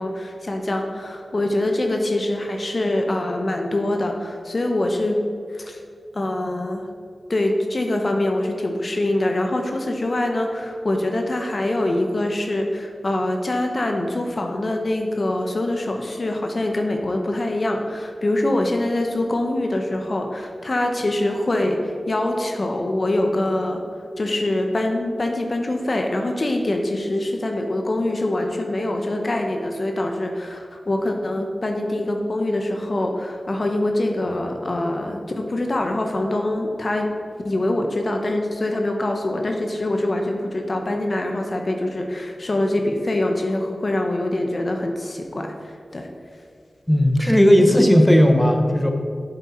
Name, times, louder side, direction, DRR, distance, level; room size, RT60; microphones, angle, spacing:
voice 1, 0.0-5.2 5.5-5.8 6.1-6.8 7.3-23.8 24.2-37.1 37.4-45.5 45.9-46.1 47.7-47.9, left 1 dB, 50° left, 3 dB, 0.9 m, -24 dB
voice 2, 46.9-48.9, equal, 15° left, 4 dB, 1.0 m, -15 dB
7.8 x 7.3 x 4.4 m, 2.2 s
cardioid pair, 45°, 0 cm